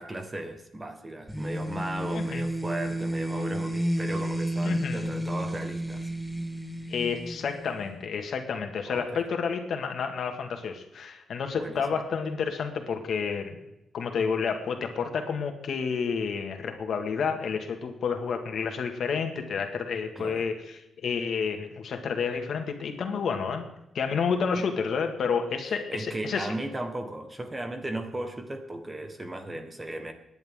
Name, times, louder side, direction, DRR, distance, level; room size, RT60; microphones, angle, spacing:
voice 1, 0.0-6.1 8.9-9.2 11.5-12.0 20.1-20.4 25.9-30.1, right 1 dB, 20° right, 6 dB, 1.5 m, -36 dB
sound 1, 1.3-7.9, right 1 dB, ahead, 1.3 m, -31 dB
voice 2, 2.1-2.5 4.6-5.1 6.9-13.6 13.9-23.7 23.9-26.5, left 6 dB, 65° left, 5 dB, 2.0 m, -30 dB
25.0 x 10.5 x 3.8 m, 0.87 s
wide cardioid pair, 135°, 0 cm